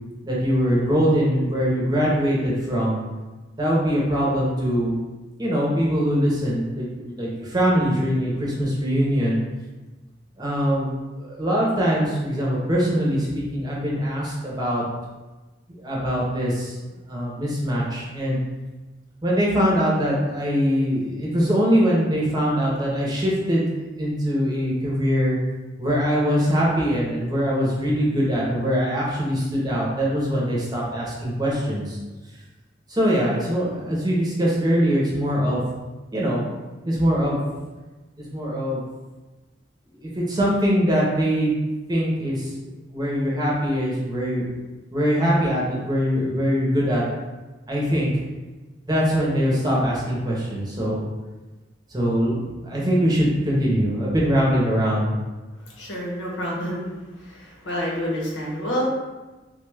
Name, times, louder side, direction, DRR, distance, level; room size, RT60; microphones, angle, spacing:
voice 1, 0.2-3.0 3.6-5.0 5.4-9.4 10.4-10.9 11.2-14.8 15.8-16.8 17.1-18.4 19.2-23.7 24.0-25.4 25.8-32.0 32.9-35.6 36.1-36.4 36.8-37.4 38.2-38.8 40.0-41.5 41.9-42.5 42.9-44.5 44.9-47.0 47.7-48.1 48.8-51.1 51.9-55.1, equal, 20° right, -5 dB, 0.7 m, -22 dB
voice 2, 55.8-56.8 57.2-58.8, equal, 85° left, -3 dB, 0.9 m, -28 dB
3.3 x 2.3 x 3.3 m, 1.2 s
head